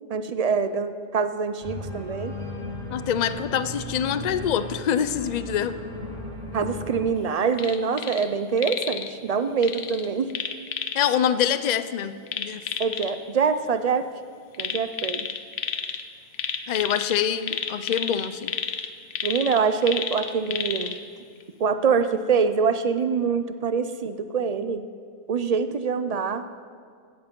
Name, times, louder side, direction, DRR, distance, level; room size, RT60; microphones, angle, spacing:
voice 1, 0.1-2.3 6.5-10.3 12.8-14.1 14.6-15.3 19.2-21.0 21.6-24.8 25.3-26.4, right 5 dB, 55° right, 10 dB, 0.4 m, -24 dB
Organ, 1.6-7.0, left 1 dB, 35° right, 3.0 m, -36 dB
voice 2, 2.9-5.7 10.9-12.6 16.7-18.5, left 9 dB, 55° left, 13 dB, 0.5 m, -25 dB
sound 1, 7.5-8.3 8.6-9.1 9.6-11.1 12.3-13.1 14.5-16.0 16.3-21.0 21.4-21.5, left 7 dB, 70° left, 0.9 m, -31 dB
15.5 x 8.1 x 5.3 m, 2.1 s
omnidirectional pair, 1.1 m